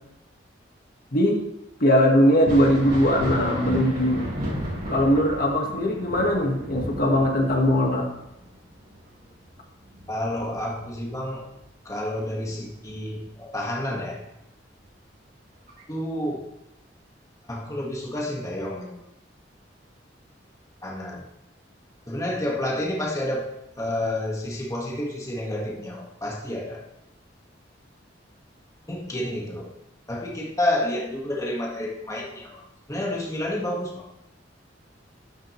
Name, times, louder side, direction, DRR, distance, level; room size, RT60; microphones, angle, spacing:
voice 1, 1.8-4.3 4.9-8.1, equal, 55° left, 1 dB, 1.7 m, -20 dB
Thunder, 2.3-11.6 12.0-13.2 14.8-14.9 15.7-15.8, equal, 55° right, 4.8 m, -34 dB
voice 2, 10.1-11.4 11.8-14.2 15.9-16.4 17.5-19.0 20.8-21.2 22.1-26.8 28.9-29.7 30.1-32.6 32.9-34.1, left 1 dB, 20° left, -2 dB, 1.7 m, -29 dB
12.5 x 11.5 x 3.2 m, 0.85 s
head